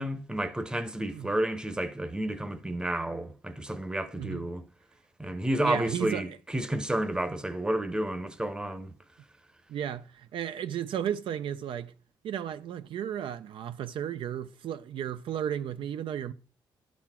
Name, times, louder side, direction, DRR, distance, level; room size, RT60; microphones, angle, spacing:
voice 1, 0.0-4.6 5.2-8.9, right 1 dB, 10° right, 0.8 m, -31 dB
voice 2, 5.6-6.4 9.7-11.9 12.2-16.3, right 9 dB, 70° right, 0.4 m, -34 dB
11.5 x 4.2 x 4.3 m
cardioid pair, 95°, 9 cm